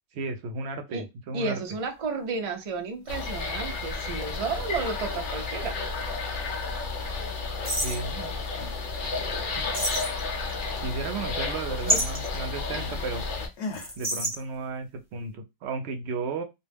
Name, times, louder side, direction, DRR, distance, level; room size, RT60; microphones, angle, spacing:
voice 1, 0.1-1.6 7.8-8.3 9.6-9.7 10.8-13.2 14.0-16.4, right 4 dB, 75° right, 6 dB, 0.8 m, -34 dB
voice 2, 1.3-5.8 11.9-12.0, right 4 dB, 45° right, 5 dB, 0.5 m, -32 dB
sound 1, 2.0-2.1 3.1-5.7 6.0-6.1 7.6-8.1 9.7-10.5 11.9-12.4 13.7-14.4, equal, 10° right, 0.9 m, -29 dB
sound 2, 3.1-13.5, left 4 dB, 50° left, 0.8 m, -32 dB
sound 3, 8.3-8.9 9.2-10.6 10.9-13.1 13.6-14.0, left 3 dB, 90° left, 1.0 m, -41 dB
2.3 x 2.1 x 3.3 m, 0.22 s
omnidirectional pair, 1.1 m